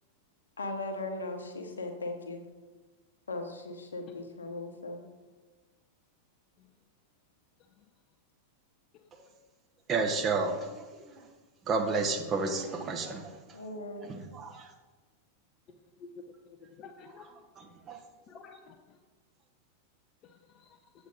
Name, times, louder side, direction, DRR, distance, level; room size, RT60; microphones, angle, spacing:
voice 1, 0.6-2.4 3.3-5.0 13.5-14.1, left 2 dB, 70° left, 5 dB, 1.0 m, -38 dB
voice 2, 9.9-11.3 11.7-13.4 14.0-14.7 17.6-18.0, right 4 dB, 30° right, 4 dB, 1.0 m, -32 dB
voice 3, 16.4-17.3 17.9-18.0 18.3-19.0 20.2-20.8, left 5 dB, 35° left, 5 dB, 0.5 m, -52 dB
7.9 x 7.2 x 4.0 m, 1.3 s
figure-of-eight pair, 90°, 0 cm